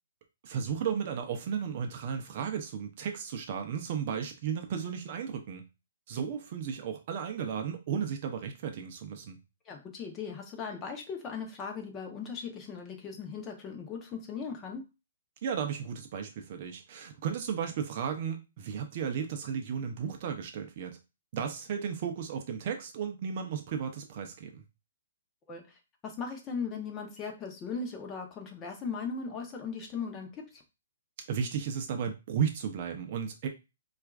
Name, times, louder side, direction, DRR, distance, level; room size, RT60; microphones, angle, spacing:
voice 1, 0.4-5.6 6.1-9.4 15.4-21.0 21.3-24.6 31.3-33.5, right 7 dB, 40° right, 0.6 m, -34 dB
voice 2, 9.7-14.8 25.5-25.8 26.0-30.6, left 5 dB, 20° left, 0.7 m, -38 dB
4.3 x 2.4 x 2.3 m
hypercardioid pair, 155°, 0 cm